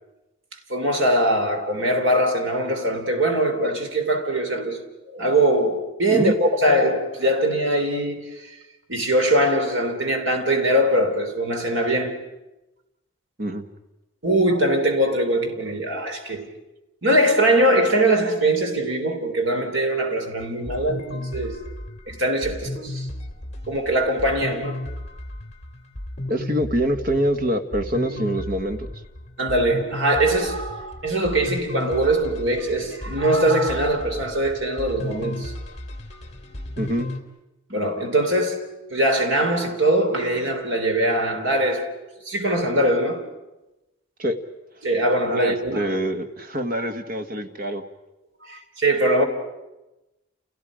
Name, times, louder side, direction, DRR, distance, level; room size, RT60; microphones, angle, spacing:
voice 1, 0.7-4.8 5.1-8.6 8.9-12.2 14.2-16.5 17.0-21.6 22.1-23.1 23.7-24.8 29.4-35.5 37.7-38.6 38.9-41.9 42.2-43.3 44.8-46.0 48.4-49.2, right 1 dB, 70° right, 3.3 m, -22 dB
sound 1, 20.4-37.2, left 1 dB, 35° left, 2.5 m, -34 dB
voice 2, 26.3-28.9 36.8-37.1 44.2-44.4 45.2-47.8, right 1 dB, 45° right, 1.6 m, -25 dB
30.0 x 30.0 x 5.1 m
head